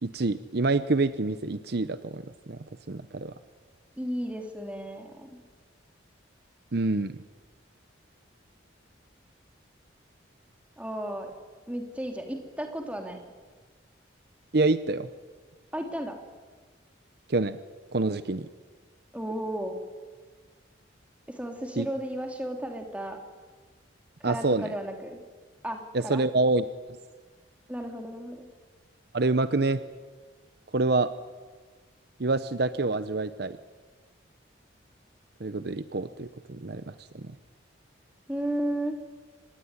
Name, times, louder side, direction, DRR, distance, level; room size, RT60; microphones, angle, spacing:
voice 1, 0.0-2.6 2.9-3.3 6.7-7.1 14.5-15.1 17.3-17.6 17.9-18.5 21.8-21.9 24.2-24.7 25.9-26.6 29.1-29.8 30.7-31.1 32.2-33.6 35.4-37.3, right 3 dB, 55° right, 13 dB, 0.8 m, -27 dB
voice 2, 4.0-5.4 10.8-11.3 11.7-13.2 15.7-16.2 19.1-19.8 21.3-23.2 24.2-25.2 25.6-26.2 27.7-28.5 38.3-39.0, right 1 dB, 5° right, 3 dB, 3.0 m, -34 dB
25.5 x 20.0 x 9.8 m, 1.5 s
head